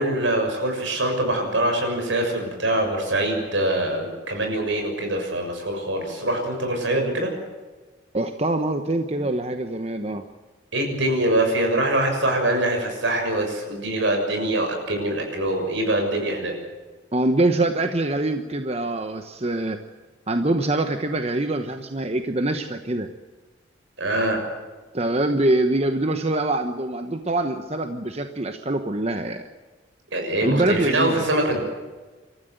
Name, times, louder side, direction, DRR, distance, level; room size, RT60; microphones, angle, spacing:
voice 1, 0.0-7.3 10.7-16.5 24.0-24.4 30.1-31.6, right 1 dB, 75° right, 3 dB, 6.6 m, -24 dB
voice 2, 8.1-10.2 17.1-19.8 20.3-23.1 24.9-29.4 30.4-31.3, right 2 dB, 35° right, 7 dB, 1.0 m, -24 dB
27.5 x 14.0 x 8.0 m, 1.3 s
head